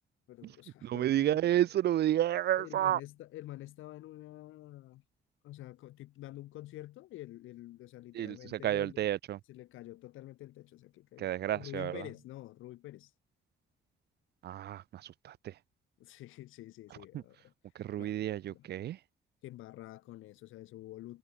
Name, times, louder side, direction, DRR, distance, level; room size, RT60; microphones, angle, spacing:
voice 1, 0.3-1.3 2.6-5.0 5.4-9.1 9.5-13.1 16.0-17.5 18.0-18.7 19.4-21.2, left 15 dB, 90° left, 2.2 m, -48 dB
voice 2, 0.8-3.0 8.1-9.4 11.2-12.0 14.4-15.5 17.8-19.0, right 12 dB, 55° right, 0.4 m, -31 dB
cardioid pair, 90°, 20 cm